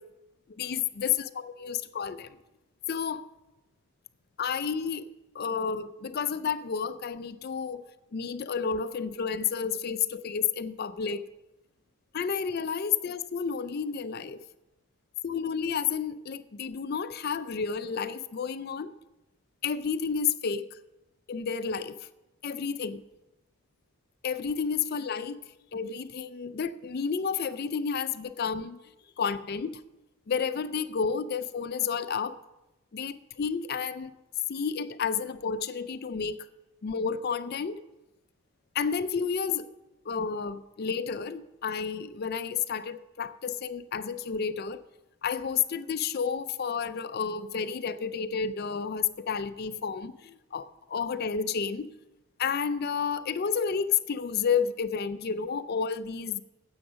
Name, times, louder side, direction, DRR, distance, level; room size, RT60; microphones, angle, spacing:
voice 1, 0.6-2.4 2.9-3.2 4.4-5.1 5.3-7.8 8.1-11.3 12.1-14.4 15.2-18.9 19.6-20.7 21.3-22.0 22.4-23.0 24.2-25.4 25.7-28.8 29.2-29.8 30.3-32.4 32.9-34.1 34.5-36.5 36.8-37.8 38.7-39.7 40.1-44.8 45.2-51.9 52.4-56.4, left 6 dB, 45° left, 0.4 m, -31 dB
9.8 x 7.9 x 6.2 m
head